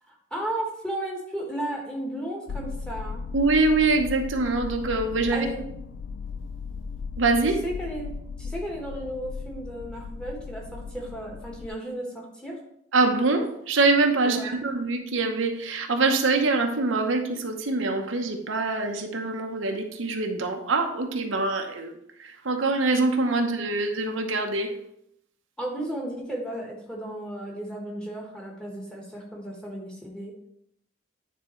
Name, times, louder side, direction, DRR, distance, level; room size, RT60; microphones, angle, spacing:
voice 1, 0.1-3.2 5.3-5.7 7.6-12.6 14.2-14.6 25.6-30.3, right 1 dB, 5° left, -2 dB, 1.4 m, -34 dB
sound 1, 2.5-11.7, left 4 dB, 85° left, 0.4 m, -37 dB
voice 2, 3.3-5.5 7.2-7.6 12.9-21.9 22.2-24.7, right 3 dB, 85° right, 4 dB, 0.9 m, -24 dB
9.3 x 3.6 x 4.3 m, 0.75 s
head